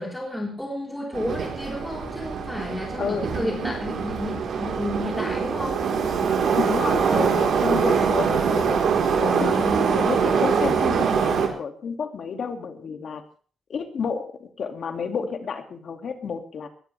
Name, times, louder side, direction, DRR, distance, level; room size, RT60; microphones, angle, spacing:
voice 1, 0.0-5.8 9.2-10.0, left 1 dB, 5° left, -2 dB, 4.1 m, -31 dB
Subway metro underground, 1.1-11.5, right 6 dB, 70° right, 4.0 m, -23 dB
voice 2, 3.0-3.3 6.5-8.8 9.1-13.2 13.7-16.7, left 6 dB, 55° left, 5 dB, 2.4 m, -30 dB
20.5 x 17.0 x 3.5 m, 0.43 s
cardioid pair, 130°, 0 cm